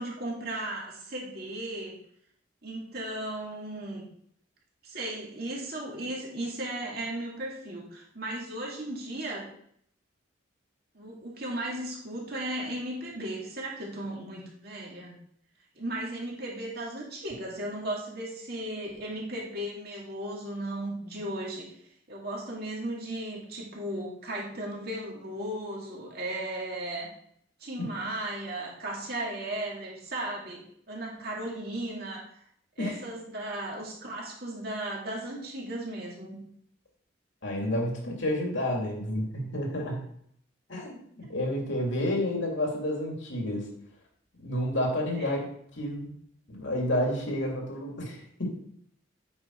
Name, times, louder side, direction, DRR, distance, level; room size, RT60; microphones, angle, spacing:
voice 1, 0.0-1.9 2.6-4.1 4.8-9.5 10.9-15.2 15.8-21.7 22.1-27.1 27.6-32.2 32.8-36.4 41.2-41.3 45.1-45.3, right 1 dB, 50° right, -3 dB, 2.6 m, -36 dB
voice 2, 37.4-40.0 40.7-43.7 44.4-45.4 45.7-46.1 46.5-48.6, left 1 dB, 75° left, 0 dB, 2.5 m, -30 dB
8.8 x 5.3 x 4.6 m, 0.67 s
head